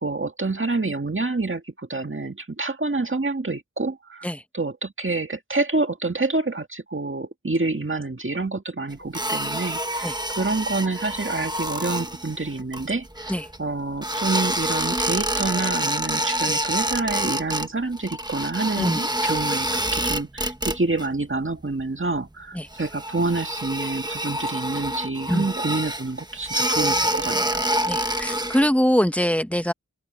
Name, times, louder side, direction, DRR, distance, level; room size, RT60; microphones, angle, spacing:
voice 1, 0.0-4.2 4.5-13.3 13.6-27.7, right 3 dB, 45° right, 1.9 m, -27 dB
sound 1, 9.1-13.6 14.0-17.7 17.9-21.1 21.3-21.8 22.1-22.2 22.7-28.7, right 1 dB, 15° right, 1.2 m, -27 dB
voice 2, 27.8-29.7, equal, 5° left, 0.9 m, -23 dB
open air
wide cardioid pair, 50°, 29 cm